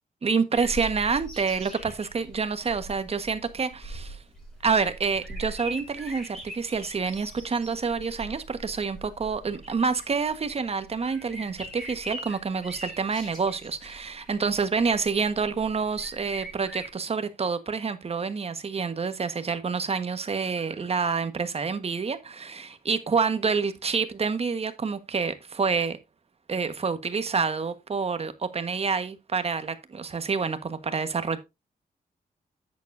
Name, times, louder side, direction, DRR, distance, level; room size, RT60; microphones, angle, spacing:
voice 1, 0.2-4.2 4.6-26.0 26.5-31.4, right 5 dB, 40° right, 1.3 m, -28 dB
sound 1, 0.5-16.9, right 1 dB, 5° left, 5.6 m, -42 dB
10.5 x 9.5 x 2.6 m
cardioid pair, 105°, 15 cm